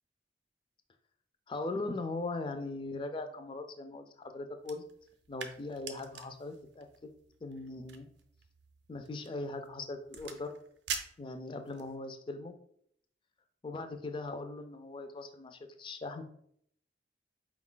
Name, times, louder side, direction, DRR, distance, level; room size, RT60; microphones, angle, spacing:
voice 1, 1.5-4.8 5.3-7.1 7.4-8.1 8.9-10.5 11.2-12.5 13.6-16.2, left 2 dB, 25° left, 7 dB, 0.4 m, -40 dB
sound 1, 4.6-12.0, right 7 dB, 70° right, 0.5 m, -46 dB
4.4 x 2.3 x 3.8 m, 0.68 s
head